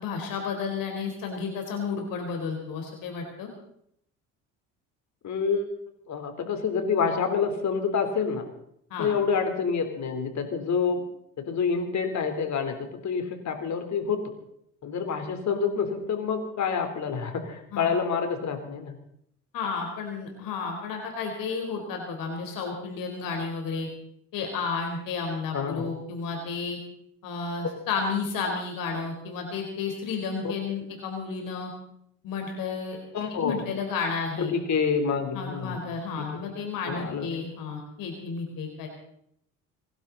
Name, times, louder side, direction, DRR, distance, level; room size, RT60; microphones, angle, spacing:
voice 1, 0.0-3.5 8.9-9.1 17.7-17.9 19.5-23.9 24.3-26.8 27.2-31.7 32.2-33.0 33.4-34.5 35.3-38.9, left 5 dB, 65° left, 2 dB, 4.2 m, -32 dB
voice 2, 5.2-5.7 6.1-8.5 9.0-11.0 11.4-14.2 14.8-19.0 25.5-25.9 30.4-30.5 33.1-33.7 34.4-35.8 36.2-36.3 36.9-37.3, left 6 dB, 50° left, 6 dB, 3.7 m, -27 dB
27.0 x 12.0 x 4.1 m, 0.72 s
supercardioid pair, 75°, 36 cm